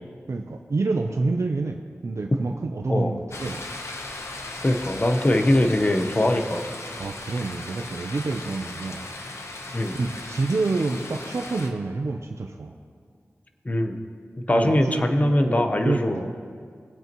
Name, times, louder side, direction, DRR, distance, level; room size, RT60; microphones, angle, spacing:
voice 1, 0.3-3.6 7.0-9.1 9.6-12.7 14.5-16.3, right 3 dB, 70° right, 3 dB, 0.6 m, -28 dB
sound 1, 3.3-11.7, left 2 dB, 65° left, 0.9 m, -37 dB
voice 2, 4.6-6.6 9.7-10.0 13.6-14.0 14.5-16.3, left 1 dB, 30° left, 6 dB, 0.8 m, -22 dB
20.0 x 8.2 x 3.0 m, 2.1 s
wide cardioid pair, 90°, 5 cm